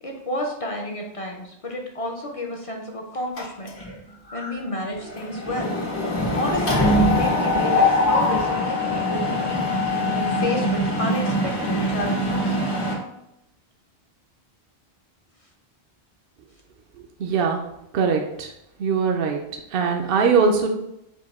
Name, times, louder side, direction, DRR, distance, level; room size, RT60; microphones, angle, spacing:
voice 1, 0.0-3.7 4.3-5.7 6.3-9.7 10.1-12.6, left 1 dB, 40° left, 0 dB, 0.5 m, -30 dB
Mechanisms, 3.4-4.0 4.3-4.5 4.8-12.9, left 1 dB, 85° left, 1.5 m, -23 dB
voice 2, 17.2-17.6 17.9-18.5 18.8-19.4 19.7-20.7, right 5 dB, 65° right, 2 dB, 0.7 m, -21 dB
4.6 x 2.6 x 4.1 m, 0.84 s
omnidirectional pair, 1.1 m